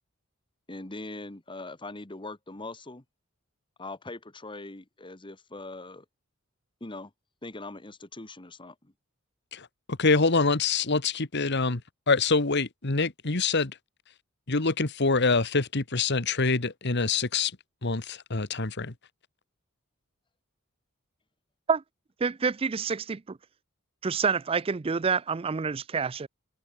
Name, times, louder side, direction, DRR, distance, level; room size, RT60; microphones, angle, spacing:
voice 1, 0.7-3.0 3.8-6.0 6.8-7.1 7.4-8.9, left 2 dB, 25° left, 1.6 m, -41 dB
voice 2, 9.5-11.8 12.1-13.8 14.5-17.5 17.8-18.9, left 4 dB, 55° left, 1.7 m, -25 dB
voice 3, 22.2-23.4 24.0-26.3, right 5 dB, 25° right, 0.4 m, -27 dB
head